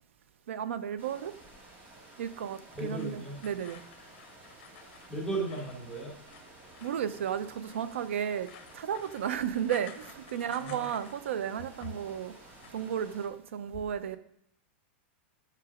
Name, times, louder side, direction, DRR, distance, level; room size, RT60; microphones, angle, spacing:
voice 1, 0.5-1.3 2.2-3.8 6.8-12.3 12.7-14.2, right 9 dB, 85° right, 13 dB, 0.7 m, -34 dB
sound 1, 1.0-13.3, right 2 dB, 30° right, 2.2 m, -53 dB
voice 2, 2.7-3.4 5.1-6.2 10.3-10.9 11.8-11.9, right 2 dB, ahead, -5 dB, 3.2 m, -36 dB
sound 2, 3.0-11.4 11.6-12.1 12.5-13.0, left 8 dB, 55° left, 1.1 m, -54 dB
11.0 x 4.7 x 5.0 m, 0.73 s
supercardioid pair, 145°, 7 cm